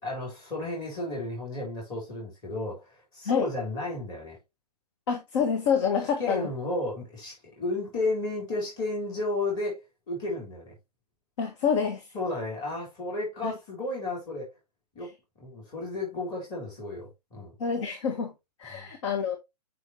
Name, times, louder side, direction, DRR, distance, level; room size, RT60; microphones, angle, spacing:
voice 1, 0.0-4.4 6.2-10.8 12.1-14.5 14.9-15.1 15.4-17.6 18.7-18.9, left 2 dB, 20° left, 3.9 m, -33 dB
voice 2, 5.1-6.4 11.4-12.1 13.4-13.5 17.6-18.3 18.6-19.4, left 6 dB, 45° left, 1.3 m, -27 dB
6.3 x 5.7 x 3.2 m
figure-of-eight pair, 120°, 21 cm